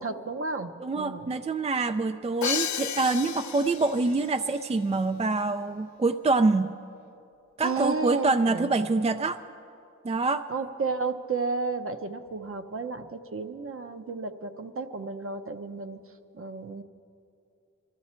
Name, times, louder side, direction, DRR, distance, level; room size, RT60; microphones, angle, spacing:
voice 1, 0.0-1.3 7.6-8.7 10.5-16.0 16.3-16.8, right 4 dB, 45° right, 8 dB, 0.8 m, -32 dB
voice 2, 0.8-6.7 7.6-9.4 10.0-10.5, right 3 dB, 20° right, 9 dB, 0.4 m, -25 dB
Crash cymbal, 2.4-4.3, left 8 dB, 70° left, 0.5 m, -32 dB
23.0 x 14.0 x 4.4 m, 2.7 s
wide cardioid pair, 75°, 30 cm